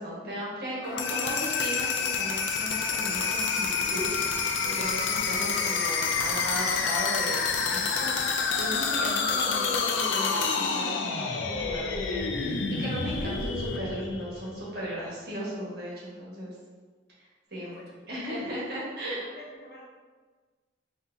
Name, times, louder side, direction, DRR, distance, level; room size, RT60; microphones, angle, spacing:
voice 1, 0.0-11.0 11.5-16.5 17.5-17.7 18.1-19.2, equal, 60° right, -6 dB, 1.4 m, -36 dB
sound 1, 0.8-14.7, left 5 dB, 85° left, 0.4 m, -28 dB
voice 2, 17.6-18.0 19.0-19.8, left 1 dB, 55° left, -4 dB, 0.9 m, -47 dB
5.4 x 2.8 x 2.6 m, 1.4 s
head